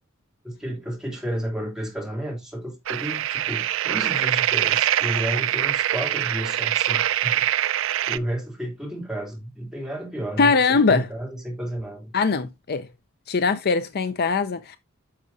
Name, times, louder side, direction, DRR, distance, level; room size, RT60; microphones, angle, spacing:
voice 1, 0.4-7.5 8.1-12.1, right 1 dB, 5° right, 3.1 m, -32 dB
sound 1, 2.9-8.2, right 12 dB, 65° right, 0.4 m, -24 dB
voice 2, 10.4-11.1 12.1-12.9 13.3-14.8, left 4 dB, 50° left, 0.5 m, -21 dB
9.7 x 6.7 x 2.7 m
head